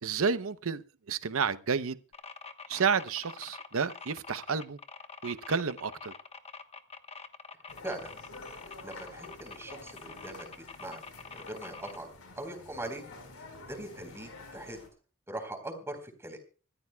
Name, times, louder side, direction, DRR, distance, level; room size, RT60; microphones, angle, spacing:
voice 1, 0.0-2.0 2.7-4.8 5.2-6.1, right 5 dB, 70° right, 0.8 m, -30 dB
sound 1, 2.1-12.0, left 5 dB, 30° left, 1.1 m, -46 dB
sound 2, 7.7-14.9, left 2 dB, 70° left, 4.7 m, -49 dB
voice 2, 7.8-8.1 8.8-11.0 11.3-12.1 12.4-13.0 13.7-14.8 15.3-16.4, right 1 dB, 10° right, 4.1 m, -41 dB
25.5 x 14.0 x 2.3 m
head